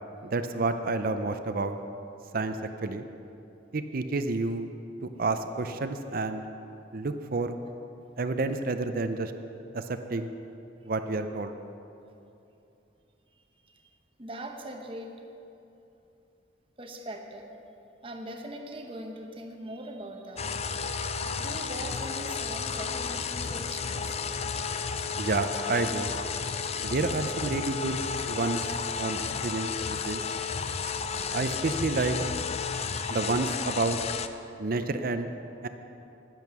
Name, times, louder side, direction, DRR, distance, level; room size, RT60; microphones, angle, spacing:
voice 1, 0.2-1.8 2.3-3.0 3.7-4.7 5.0-6.4 6.9-7.6 8.2-9.3 9.7-10.3 10.8-11.5 25.2-26.1 26.8-28.0 28.3-30.2 31.3-32.3 33.1-34.0 34.6-35.3 35.6-35.7, right 3 dB, 50° right, 8 dB, 0.6 m, -29 dB
voice 2, 13.3-13.9 14.2-15.2 16.8-17.6 18.0-20.5 21.4-24.2 29.3-29.4 30.6-31.4 32.7-33.5, right 1 dB, 30° right, 4 dB, 0.9 m, -42 dB
sound 1, 20.4-34.3, left 5 dB, 35° left, 0.4 m, -32 dB
10.5 x 10.5 x 6.8 m, 2.8 s
head